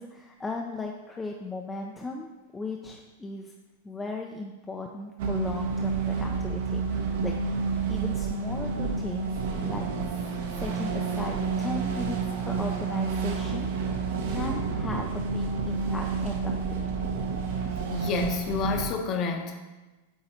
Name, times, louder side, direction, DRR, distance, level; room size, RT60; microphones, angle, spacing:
voice 1, 0.0-3.5 3.8-7.4 7.6-13.7 14.3-16.9, left 3 dB, 10° left, 1 dB, 0.4 m, -37 dB
sound 1, 5.2-18.9, right 5 dB, 60° right, 0.9 m, -29 dB
voice 2, 17.9-19.6, left 5 dB, 30° left, 4 dB, 0.7 m, -29 dB
8.0 x 2.9 x 4.3 m, 1.2 s
supercardioid pair, 155°, 0 cm